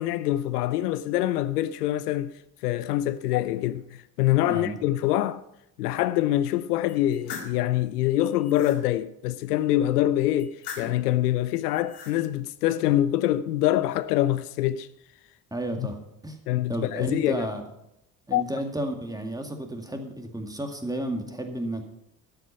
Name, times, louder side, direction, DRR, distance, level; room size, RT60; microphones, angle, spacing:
voice 1, 0.0-2.3 2.6-5.4 5.8-14.9 15.8-15.9 16.5-17.5 18.3-18.4, left 14 dB, 75° left, 0.5 m, -25 dB
voice 2, 4.4-4.8 15.5-16.0 16.2-16.4 16.7-17.6 18.3-21.9, right 1 dB, 10° right, 2.0 m, -32 dB
sound 1, 6.9-7.6 8.2-8.8 10.4-11.1 11.7-12.2, left 6 dB, 55° left, 2.1 m, -40 dB
12.5 x 8.4 x 5.5 m
figure-of-eight pair, 50°, 47 cm